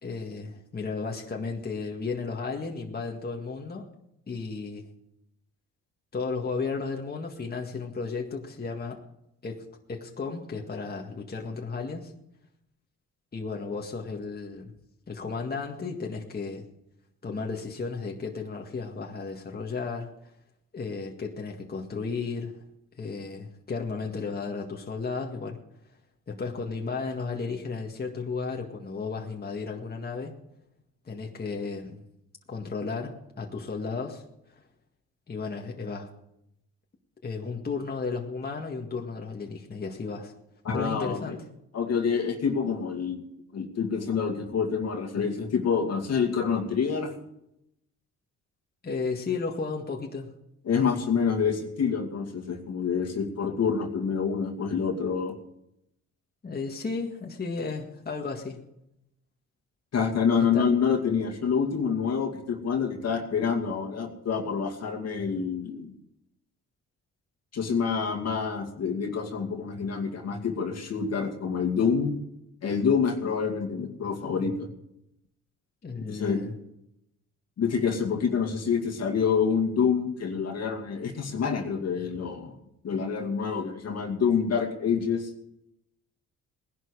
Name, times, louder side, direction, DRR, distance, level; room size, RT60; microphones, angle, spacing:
voice 1, 0.0-3.9 4.3-4.9 6.1-9.0 9.4-12.1 13.3-14.7 15.1-16.6 17.2-20.1 20.7-22.5 23.0-25.6 26.3-30.3 31.1-32.0 32.5-34.2 35.3-36.1 37.2-40.3 40.7-41.4 48.8-50.3 56.4-58.6 60.5-60.7 75.8-76.5, left 4 dB, 30° left, 1 dB, 1.9 m, -34 dB
voice 2, 40.6-41.4 41.7-43.2 43.5-47.1 50.6-55.4 59.9-65.9 67.5-72.1 72.6-74.7 76.1-76.5 77.6-82.6 82.8-85.3, left 6 dB, 55° left, 4 dB, 2.4 m, -27 dB
19.0 x 11.5 x 4.9 m, 0.82 s
cardioid pair, 90°, 30 cm